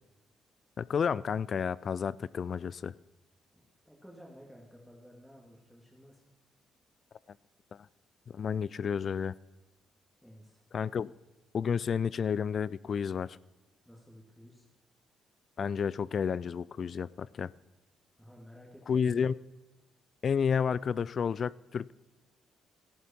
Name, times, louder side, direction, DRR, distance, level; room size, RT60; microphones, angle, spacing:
voice 1, 0.8-2.9 7.7-7.9 8.3-9.3 10.7-11.1 11.5-13.4 15.6-17.5 18.9-19.3 20.2-21.9, left 6 dB, 50° left, 0.3 m, -31 dB
voice 2, 3.8-6.2 10.2-10.6 13.9-14.7 18.2-19.3, equal, 5° left, 2.3 m, -54 dB
13.0 x 11.0 x 4.4 m
cardioid pair, 90°, 0 cm